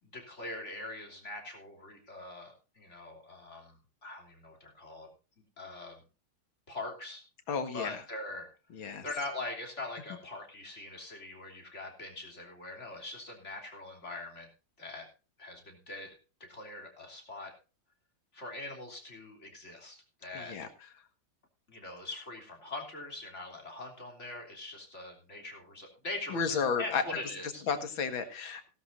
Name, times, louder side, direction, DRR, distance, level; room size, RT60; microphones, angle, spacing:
voice 1, 0.0-5.1 5.6-6.0 6.7-7.2 7.7-8.5 9.0-14.5 14.8-15.1 15.4-16.1 16.4-17.5 18.3-20.5 21.7-27.6, left 2 dB, 35° left, 2 dB, 3.5 m, -42 dB
voice 2, 7.5-8.0 8.7-9.0 20.3-20.7 26.3-27.0 27.7-28.7, left 5 dB, 75° left, 8 dB, 2.4 m, -32 dB
17.0 x 12.5 x 2.6 m, 0.33 s
omnidirectional pair, 2.2 m